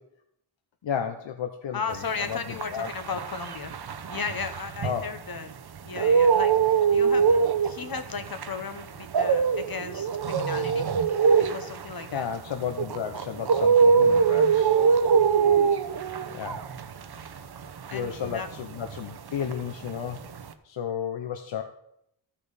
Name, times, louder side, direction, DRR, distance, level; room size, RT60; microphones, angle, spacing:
voice 1, 0.8-2.9 4.8-5.0 6.0-6.1 12.1-14.8 16.1-16.7 17.9-20.3 20.6-21.6, left 7 dB, 75° left, 7 dB, 0.7 m, -33 dB
voice 2, 1.7-3.7 4.1-5.5 5.8-10.9 11.4-12.3 14.4-14.5 17.9-18.5, left 5 dB, 50° left, 9 dB, 1.0 m, -35 dB
sound 1, 2.1-5.4 5.8-19.2 19.4-20.5, right 6 dB, 60° right, 0.7 m, -23 dB
14.0 x 5.6 x 4.0 m, 0.78 s
wide cardioid pair, 90°, 44 cm